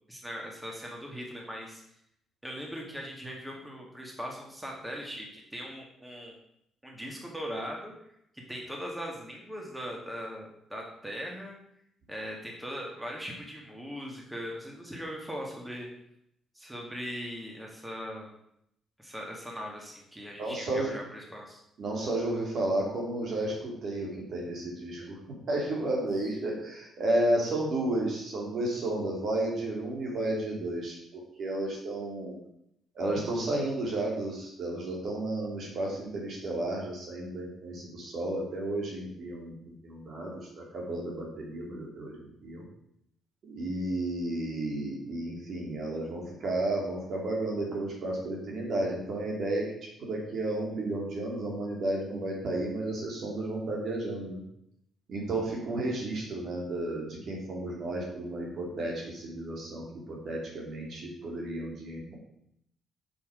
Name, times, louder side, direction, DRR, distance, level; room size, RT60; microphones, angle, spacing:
voice 1, 0.1-1.8 2.4-6.3 6.8-7.9 8.3-11.5 12.1-15.9 16.5-18.3 19.0-21.6, equal, 5° right, -1 dB, 1.7 m, -40 dB
voice 2, 20.4-20.9 21.8-25.1 25.5-32.4 32.9-39.5 39.8-42.6 43.5-49.7 50.0-54.4 55.1-62.2, right 1 dB, 60° right, -1 dB, 2.7 m, -32 dB
6.5 x 5.5 x 5.0 m, 0.75 s
cardioid pair, 90°, 0 cm